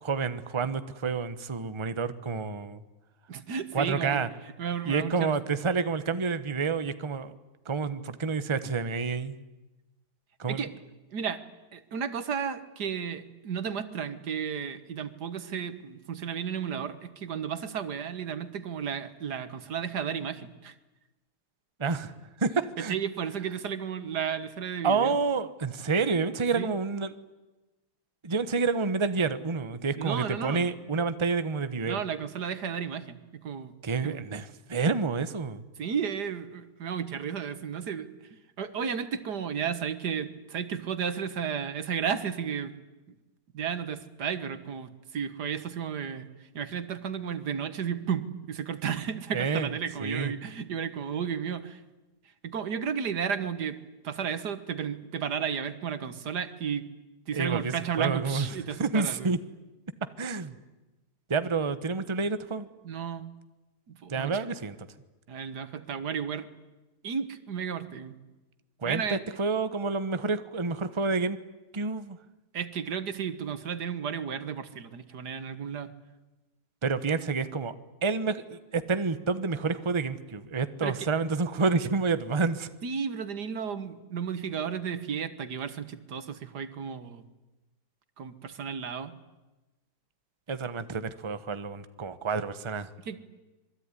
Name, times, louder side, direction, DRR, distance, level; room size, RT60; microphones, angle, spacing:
voice 1, 0.0-2.8 3.7-4.3 4.8-7.3 7.6-9.4 10.4-10.7 21.8-22.1 22.4-22.9 24.8-27.1 28.2-32.0 33.8-35.6 49.3-49.7 50.0-50.3 57.3-58.5 58.8-59.4 60.2-60.5 61.3-62.7 64.1-64.8 68.8-69.0 69.4-71.4 71.7-72.2 76.8-77.7 78.0-82.7 90.5-92.9, right 4 dB, 20° right, 12 dB, 1.0 m, -29 dB
voice 2, 3.3-4.2 4.6-5.4 10.5-10.7 11.1-11.4 11.7-20.8 22.8-25.2 26.6-26.7 30.0-30.6 31.9-33.7 34.0-34.2 35.8-42.7 43.5-51.8 52.2-53.8 54.0-56.9 57.3-59.3 62.8-63.3 63.9-64.4 65.3-66.5 67.0-68.1 68.8-69.2 72.5-75.9 80.8-81.1 82.8-87.2 88.2-89.2 93.1-93.2, right 7 dB, 85° right, 12 dB, 2.0 m, -33 dB
26.0 x 22.0 x 9.9 m, 1.1 s
omnidirectional pair, 1.7 m